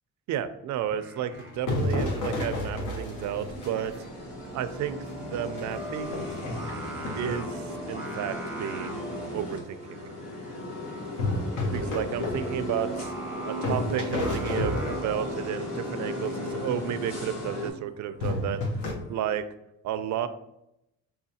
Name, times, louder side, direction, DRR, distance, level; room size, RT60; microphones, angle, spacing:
voice 1, 0.3-3.9 4.5-5.0 5.3-6.3 7.2-7.6 7.9-9.1 9.3-10.0 11.7-13.1 13.5-18.6 19.1-19.5 19.8-20.3, right 10 dB, 70° right, 11 dB, 0.4 m, -32 dB
Singing, 0.8-19.3, right 2 dB, 5° right, 0.5 m, -45 dB
sound 1, 1.3-4.1 4.6-4.7 5.3-7.5 11.2-13.3 13.6-15.4 18.2-18.9, left 2 dB, 80° left, 0.9 m, -31 dB
sound 2, 3.1-17.7, left 1 dB, 55° left, 1.3 m, -36 dB
6.3 x 2.3 x 2.7 m, 0.84 s
cardioid pair, 90°, 30 cm